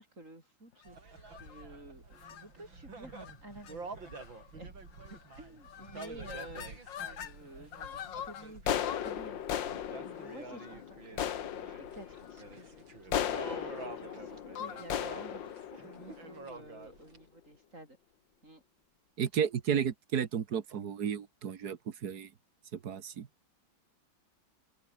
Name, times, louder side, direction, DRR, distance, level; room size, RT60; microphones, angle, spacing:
voice 1, 0.0-4.7 5.1-18.0 18.4-18.6, right 1 dB, 40° right, 8.5 m, -52 dB
sound 1, 0.8-17.2, right 4 dB, 70° right, 4.9 m, -49 dB
sound 2, 1.3-1.6 2.2-2.4 3.1-3.4 3.6-3.7 4.1-4.5 5.0-5.4 5.6-7.3 7.7-16.9, left 10 dB, 70° left, 1.9 m, -38 dB
voice 2, 19.2-22.3 22.7-23.3, right 8 dB, 55° right, 1.7 m, -33 dB
omnidirectional pair, 2.1 m